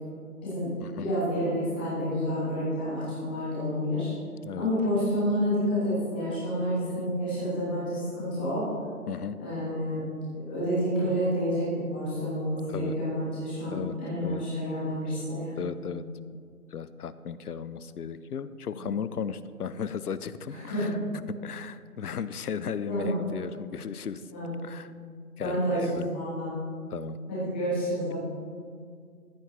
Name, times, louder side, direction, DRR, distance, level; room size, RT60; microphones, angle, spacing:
voice 1, 1.0-4.1 4.6-8.7 9.4-10.0 10.3-15.6 18.7-18.8 20.5-20.9 22.9-23.2 24.3-24.5 25.4-26.5 27.3-28.1, equal, 5° left, -10 dB, 1.2 m, -29 dB
voice 2, 9.1-9.4 12.7-13.0 13.7-14.4 15.6-16.0 16.7-21.0 21.3-24.3 24.6-24.9 25.4-26.1 26.9-27.2, left 7 dB, 80° left, 15 dB, 0.6 m, -35 dB
14.5 x 6.0 x 3.0 m, 2.2 s
figure-of-eight pair, 160°, 45 cm